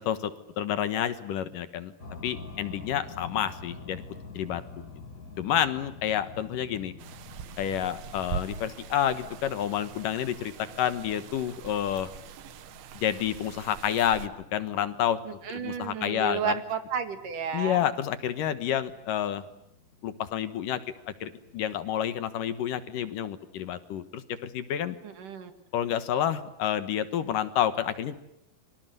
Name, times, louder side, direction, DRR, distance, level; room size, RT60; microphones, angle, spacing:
voice 1, 0.0-1.9 2.2-4.0 4.3-4.9 5.4-6.9 7.6-12.1 12.9-15.2 15.5-16.6 17.5-19.4 20.0-20.8 21.2-25.0 25.7-28.2, left 10 dB, 70° left, 12 dB, 2.7 m, -29 dB
sound 1, 2.0-21.8, left 4 dB, 25° left, 3.0 m, -48 dB
sound 2, 7.0-14.3, right 8 dB, 80° right, 3.2 m, -42 dB
voice 2, 15.3-17.8 25.0-25.5, right 7 dB, 60° right, 9 dB, 3.5 m, -32 dB
29.5 x 24.5 x 7.8 m, 0.82 s
omnidirectional pair, 4.3 m